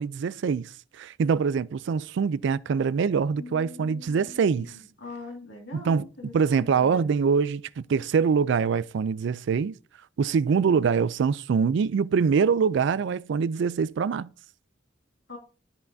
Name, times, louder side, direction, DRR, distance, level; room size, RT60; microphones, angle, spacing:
voice 1, 0.0-4.7 5.7-6.0 6.3-9.8 10.2-14.3, right 6 dB, 60° right, 0.3 m, -24 dB
voice 2, 3.3-7.1 15.3-15.4, left 3 dB, 65° left, 2.0 m, -43 dB
12.5 x 5.5 x 2.6 m
head